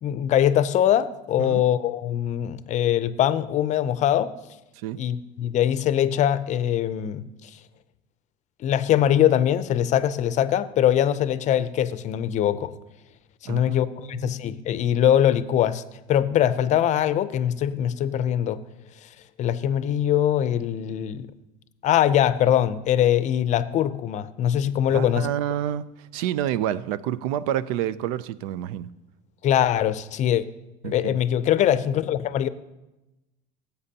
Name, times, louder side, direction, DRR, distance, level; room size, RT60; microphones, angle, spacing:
voice 1, 0.0-4.3 5.0-7.5 8.6-12.7 13.4-15.8 16.1-18.6 19.4-21.3 21.8-25.3 29.4-30.4 30.8-32.5, left 10 dB, 40° left, 0.5 m, -22 dB
voice 2, 13.4-14.3 24.9-28.9 30.8-31.2, right 11 dB, 85° right, 0.5 m, -29 dB
15.5 x 8.1 x 2.8 m
supercardioid pair, 115°, 18 cm